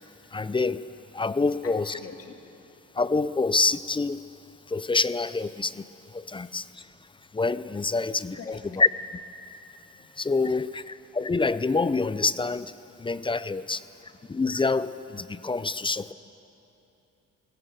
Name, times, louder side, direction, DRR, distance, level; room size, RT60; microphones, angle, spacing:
voice 1, 0.3-0.8 1.1-1.9 2.9-4.2 4.7-6.9 7.3-8.9 10.2-13.8 14.3-16.1, left 3 dB, 15° left, 15 dB, 0.5 m, -27 dB
voice 2, 1.6-2.7 4.6-4.7 6.3-6.6 7.1-7.4 8.1-8.8 9.4-10.7 13.8-14.2 16.0-16.1, left 5 dB, 50° left, 4 dB, 2.2 m, -49 dB
19.5 x 16.5 x 7.9 m, 3.0 s
cardioid pair, 90°, 30 cm